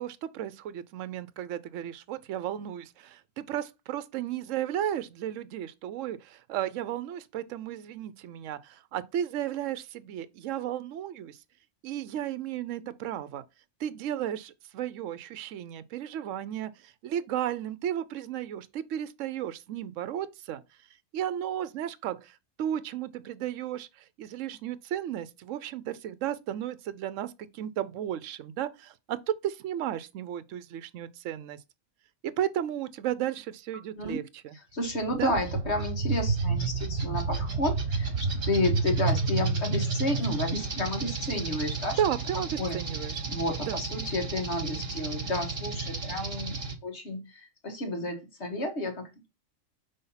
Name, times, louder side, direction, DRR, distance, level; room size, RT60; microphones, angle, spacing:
voice 1, 0.0-11.4 11.8-13.4 13.8-20.6 21.1-29.2 29.4-31.6 32.2-34.5 35.2-35.3 42.0-43.2 43.6-43.8, right 11 dB, 75° right, 1.0 m, -34 dB
voice 2, 34.5-42.0 42.6-42.8 43.3-49.3, left 1 dB, 55° left, 1.7 m, -31 dB
sound 1, 34.9-46.7, right 4 dB, 50° right, 1.5 m, -31 dB
5.6 x 3.5 x 5.6 m
omnidirectional pair, 1.4 m